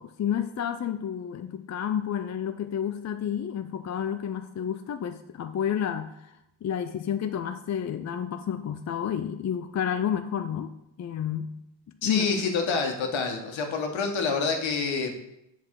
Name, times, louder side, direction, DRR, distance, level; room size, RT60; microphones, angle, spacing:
voice 1, 0.0-6.3 6.6-10.7 11.0-11.5 12.0-12.3, left 9 dB, 35° left, 9 dB, 0.5 m, -30 dB
voice 2, 12.0-15.1, left 4 dB, 70° left, 3 dB, 1.7 m, -27 dB
7.5 x 5.4 x 4.7 m, 0.85 s
supercardioid pair, 65°, 48 cm